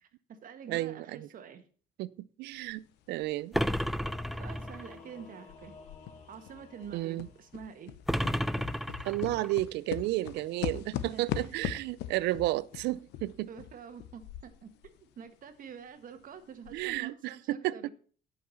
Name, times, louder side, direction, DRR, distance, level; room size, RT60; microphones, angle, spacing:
voice 1, 0.0-1.6 4.4-5.8 6.3-7.9 11.1-11.6 13.5-14.7 15.2-17.9, right 7 dB, 55° right, 1.5 m, -47 dB
voice 2, 0.7-1.3 2.0-3.6 6.9-7.3 9.0-13.5 16.7-17.9, right 17 dB, 80° right, 0.5 m, -32 dB
sound 1, 2.7-2.8 3.2-5.1 5.5-15.0 15.3-15.4 15.9-16.0 16.5-17.0, left 12 dB, 85° left, 0.8 m, -40 dB
sound 2, 3.5-5.0 8.1-9.6, equal, ahead, 0.4 m, -32 dB
Singing / Musical instrument, 3.8-7.9, left 4 dB, 45° left, 2.8 m, -54 dB
11.0 x 5.9 x 5.7 m
cardioid pair, 110°, 17 cm